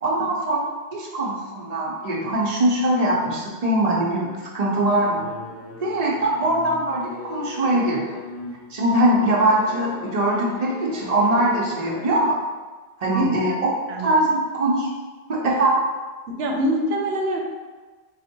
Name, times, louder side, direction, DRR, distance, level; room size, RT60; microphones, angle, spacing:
voice 1, 0.0-5.2 5.8-8.2 8.7-12.4 13.0-13.5 14.0-14.9 15.3-15.8, right 1 dB, 45° right, -3 dB, 0.8 m, -22 dB
sound 1, 4.9-12.1, left 4 dB, 65° left, 0.7 m, -39 dB
voice 2, 16.3-17.4, equal, 90° right, 1 dB, 0.8 m, -24 dB
3.9 x 2.1 x 4.4 m, 1.3 s
omnidirectional pair, 1.0 m